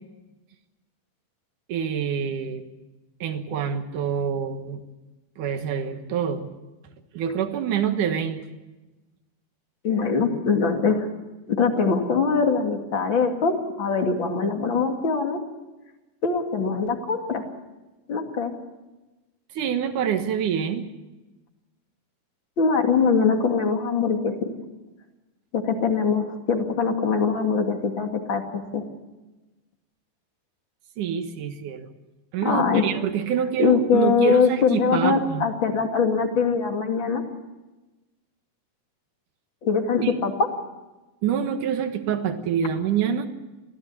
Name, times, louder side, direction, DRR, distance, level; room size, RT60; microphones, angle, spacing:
voice 1, 1.7-2.6 3.2-4.8 5.4-6.5 7.1-8.4 19.5-20.8 31.0-31.9 32.3-35.5 40.0-40.1 41.2-43.3, right 8 dB, 65° right, 7 dB, 2.8 m, -26 dB
voice 2, 9.8-11.1 11.5-13.5 13.8-15.4 16.2-17.4 18.1-18.5 22.6-24.5 25.5-28.8 32.4-32.8 33.6-37.2 39.6-40.3, left 5 dB, 35° left, 4 dB, 2.6 m, -22 dB
24.5 x 16.0 x 8.5 m, 1.1 s
omnidirectional pair, 4.3 m